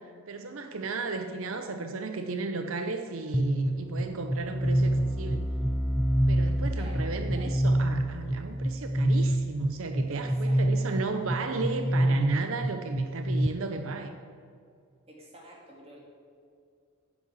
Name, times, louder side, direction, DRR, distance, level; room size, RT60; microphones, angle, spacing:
voice 1, 0.3-5.4 6.3-14.1, right 3 dB, 60° right, 7 dB, 0.7 m, -34 dB
sound 1, 3.3-13.5, right 1 dB, 5° left, 0.3 m, -27 dB
voice 2, 6.8-7.6 10.1-10.9 15.1-16.0, equal, 25° right, -2 dB, 2.3 m, -49 dB
9.9 x 8.2 x 8.0 m, 2.3 s
head